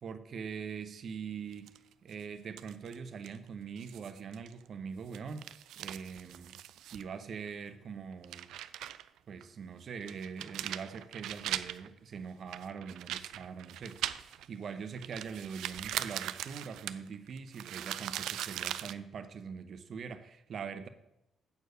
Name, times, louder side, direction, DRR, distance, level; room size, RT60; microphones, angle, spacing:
voice 1, 0.0-5.5 5.8-6.6 6.9-8.5 9.3-20.9, right 6 dB, 55° right, 10 dB, 0.8 m, -43 dB
sound 1, 1.5-2.1 2.6-3.0 3.2-3.4 3.8-4.6 5.0-7.0 7.5-7.6 8.1-9.1 9.4-9.5 10.0-11.9 12.5-14.6 15.0-18.9, right 12 dB, 85° right, 0.3 m, -40 dB
8.1 x 4.6 x 6.5 m, 0.88 s
cardioid pair, 90°, 0 cm